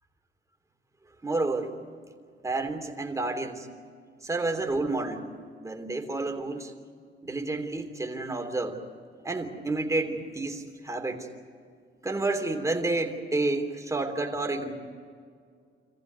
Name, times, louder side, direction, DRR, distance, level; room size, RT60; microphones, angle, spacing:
voice 1, 1.2-1.7 2.4-3.7 4.2-5.3 5.6-6.7 7.2-8.8 9.2-11.3 12.0-14.7, right 2 dB, 15° right, 3 dB, 3.2 m, -30 dB
27.0 x 15.0 x 9.5 m, 2.1 s
cardioid pair, 90°, 20 cm